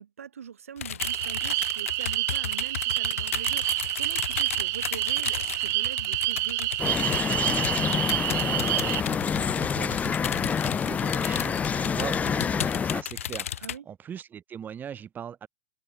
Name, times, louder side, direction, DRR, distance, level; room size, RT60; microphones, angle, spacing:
voice 1, 0.0-7.0 13.6-13.8, right 8 dB, 75° right, 7.3 m, -43 dB
sound 1, 0.8-13.8, left 10 dB, 70° left, 1.6 m, -35 dB
sound 2, 1.0-9.0, right 21 dB, 40° right, 1.2 m, -28 dB
sound 3, 6.8-13.0, left 6 dB, 20° left, 2.1 m, -27 dB
voice 2, 8.1-15.5, right 8 dB, 25° right, 5.7 m, -40 dB
figure-of-eight pair, 100°, 8 cm